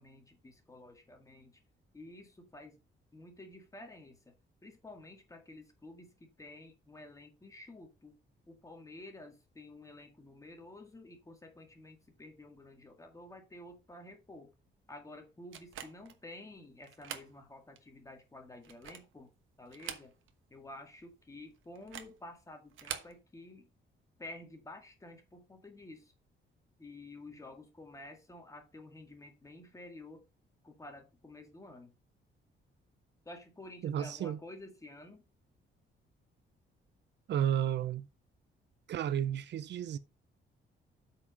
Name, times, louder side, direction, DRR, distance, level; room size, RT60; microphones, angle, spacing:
voice 1, 0.0-1.6 1.9-2.8 3.1-4.3 4.6-8.2 8.5-14.5 14.9-19.3 19.6-20.1 20.5-23.7 24.2-26.1 26.8-30.2 30.6-31.9 33.3-35.2, left 2 dB, 15° left, 2.0 m, -51 dB
sound 1, 15.5-16.2 16.8-17.3 17.8-17.9 18.5-19.2 19.7-20.4 20.7-20.8 21.7-22.2 22.7-23.2, right 9 dB, 85° right, 1.2 m, -44 dB
voice 2, 33.8-34.4 37.3-38.1 38.9-40.0, right 10 dB, 65° right, 0.6 m, -32 dB
8.3 x 5.0 x 5.2 m
cardioid pair, 135°, 20 cm